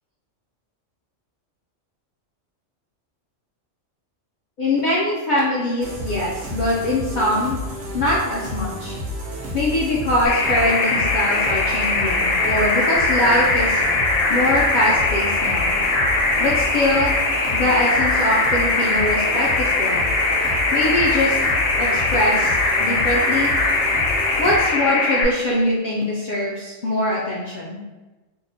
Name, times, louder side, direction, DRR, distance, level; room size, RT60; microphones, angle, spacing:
voice 1, 4.6-7.6 7.9-9.0 9.5-13.8 14.3-15.7 16.4-17.1 17.5-20.0 20.7-21.4 21.8-22.5 22.8-23.5 24.4-27.8, left 1 dB, 65° left, -5 dB, 0.4 m, -22 dB
sound 1, 5.8-24.6, left 1 dB, 75° right, 1.0 m, -31 dB
sound 2, 10.2-25.2, left 2 dB, 85° left, 1.0 m, -21 dB
2.8 x 2.0 x 3.7 m, 1.1 s
omnidirectional pair, 1.3 m